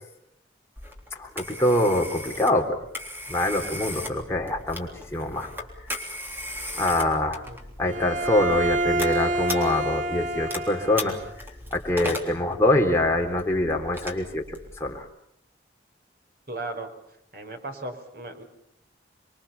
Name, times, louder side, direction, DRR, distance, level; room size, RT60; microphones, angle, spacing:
Telephone, 0.8-15.0, left 1 dB, 10° right, 3.5 m, -38 dB
voice 1, 1.1-2.7 3.3-5.5 6.7-7.4 7.8-11.2 11.7-15.1, left 1 dB, 15° left, 1 dB, 3.7 m, -24 dB
Bowed string instrument, 7.9-11.3, right 1 dB, 85° right, 1.7 m, -27 dB
voice 2, 16.5-16.9 17.3-18.4, right 2 dB, 50° right, 5 dB, 4.7 m, -36 dB
28.5 x 23.0 x 7.2 m, 0.77 s
head